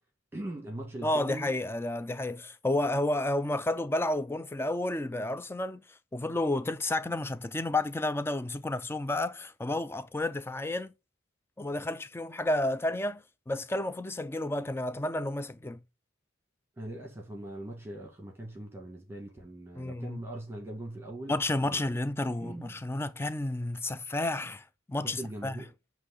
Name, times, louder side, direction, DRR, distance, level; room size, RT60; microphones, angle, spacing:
voice 1, 0.3-1.5 16.8-21.4 21.7-21.8 22.4-22.7 25.2-25.7, right 1 dB, 10° right, 1.6 m, -41 dB
voice 2, 1.0-5.8 6.1-10.9 11.6-15.8 19.8-20.2 21.3-25.6, left 1 dB, 10° left, 0.4 m, -31 dB
8.2 x 3.1 x 3.8 m
head